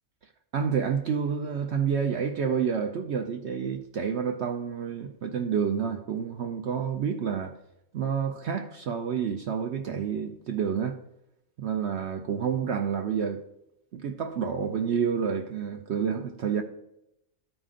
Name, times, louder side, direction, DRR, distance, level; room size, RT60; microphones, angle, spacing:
voice 1, 0.5-7.5 7.9-11.0 11.6-13.4 13.9-16.6, right 7 dB, 60° right, 0.8 m, -29 dB
12.5 x 5.0 x 3.8 m
omnidirectional pair, 1.5 m